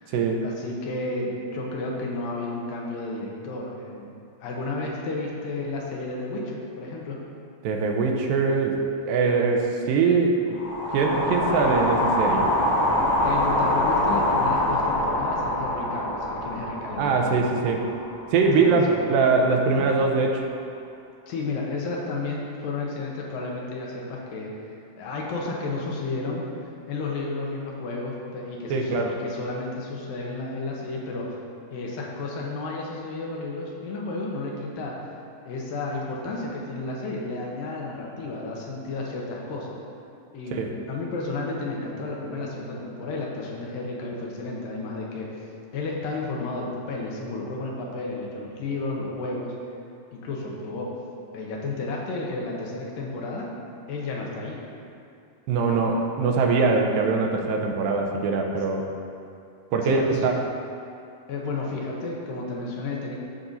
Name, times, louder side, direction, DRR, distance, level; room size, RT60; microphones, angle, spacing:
voice 1, 0.4-4.1 4.4-7.2 13.2-17.5 18.5-18.8 19.7-19.9 21.3-24.5 25.0-26.4 26.9-31.4 31.7-35.0 35.4-39.8 40.3-40.6 40.9-45.3 45.7-49.5 50.1-50.9 51.3-53.5 53.9-54.6 59.8-60.2 61.3-63.1, left 3 dB, 75° left, -2 dB, 2.5 m, -32 dB
voice 2, 7.6-8.8 9.1-10.6 10.9-12.5 17.0-17.8 18.3-20.4 28.7-29.1 40.5-40.7 55.5-58.9 59.7-60.5, right 4 dB, 85° right, 2 dB, 2.4 m, -22 dB
sound 1, 10.5-18.7, left 1 dB, 55° left, 2.3 m, -25 dB
13.0 x 5.5 x 2.6 m, 2.5 s
omnidirectional pair, 4.2 m